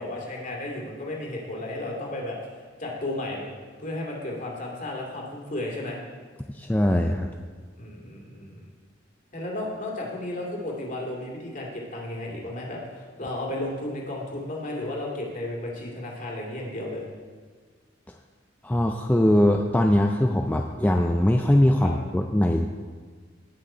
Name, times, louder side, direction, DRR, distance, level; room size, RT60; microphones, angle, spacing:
voice 1, 0.0-3.5 3.8-6.0 7.8-8.7 9.3-17.1 21.8-21.9, left 1 dB, 45° left, -2 dB, 2.5 m, -33 dB
voice 2, 6.5-7.3 18.6-22.7, left 1 dB, 10° left, 3 dB, 0.4 m, -21 dB
18.5 x 6.3 x 4.4 m, 1.5 s
head